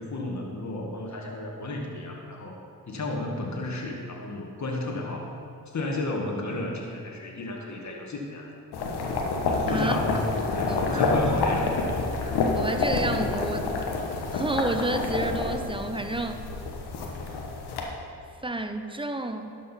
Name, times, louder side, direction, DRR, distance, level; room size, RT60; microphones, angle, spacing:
voice 1, 0.0-2.6 2.9-5.3 5.7-8.5 9.4-10.2 10.5-11.7, left 2 dB, 45° left, 0 dB, 2.0 m, -33 dB
sound 1, 8.7-17.8, left 3 dB, 75° left, 1.3 m, -28 dB
voice 2, 9.7-10.0 10.7-11.0 12.6-13.8 14.3-16.4 18.4-19.5, right 1 dB, 15° right, 7 dB, 0.8 m, -30 dB
12.0 x 5.2 x 5.8 m, 2.6 s
supercardioid pair, 50°, 39 cm